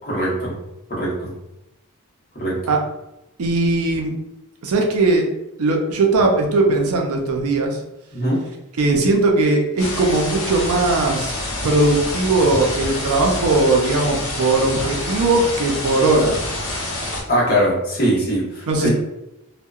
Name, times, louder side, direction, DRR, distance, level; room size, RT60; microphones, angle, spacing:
voice 1, 0.0-0.6 0.9-1.3 2.3-2.6 8.1-8.4 17.3-18.9, equal, 45° left, -6 dB, 1.0 m, -21 dB
voice 2, 3.4-4.1 4.6-5.3 5.6-7.8 8.8-11.4 11.6-16.4 18.7-18.9, right 2 dB, 75° right, 1 dB, 0.5 m, -19 dB
sound 1, 9.8-17.2, left 1 dB, 65° left, 0.7 m, -27 dB
2.7 x 2.1 x 2.3 m, 0.90 s
head